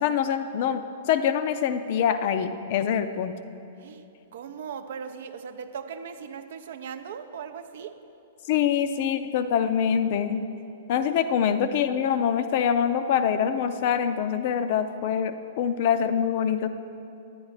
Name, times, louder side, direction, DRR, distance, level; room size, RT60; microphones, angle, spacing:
voice 1, 0.0-3.3 8.5-10.5 10.9-16.7, left 8 dB, 45° left, 10 dB, 0.4 m, -25 dB
voice 2, 4.3-7.9, right 7 dB, 55° right, 9 dB, 0.4 m, -38 dB
10.0 x 9.4 x 3.2 m, 2.8 s
figure-of-eight pair, 105°, 0 cm